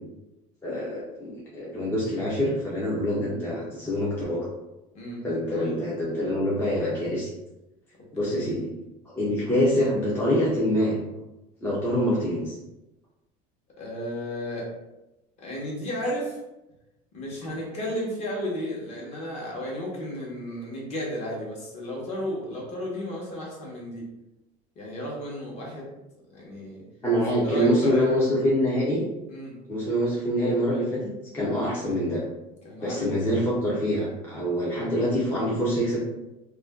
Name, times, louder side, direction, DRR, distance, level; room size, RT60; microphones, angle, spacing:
voice 1, 0.6-4.5 5.2-7.3 8.1-8.7 9.1-11.0 11.6-12.6 27.0-29.0 29.7-31.0 31.3-32.2 32.8-36.0, equal, 10° left, -7 dB, 0.4 m, -25 dB
voice 2, 13.8-14.7 15.4-16.4 17.1-24.1 24.8-25.9 26.3-26.8 27.4-28.2 29.3-29.5 32.6-33.4, equal, 40° left, -3 dB, 0.9 m, -33 dB
2.5 x 2.2 x 3.4 m, 0.98 s
cardioid pair, 165°, 18 cm